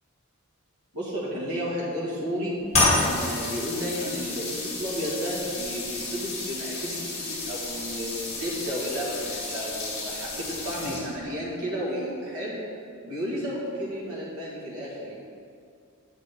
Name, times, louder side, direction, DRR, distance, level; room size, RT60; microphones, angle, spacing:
voice 1, 0.9-12.6 13.0-15.2, equal, 80° right, -6 dB, 1.8 m, -32 dB
sound 1, 2.7-11.3, left 2 dB, 30° left, 1.9 m, -30 dB
8.8 x 7.9 x 3.7 m, 2.4 s
head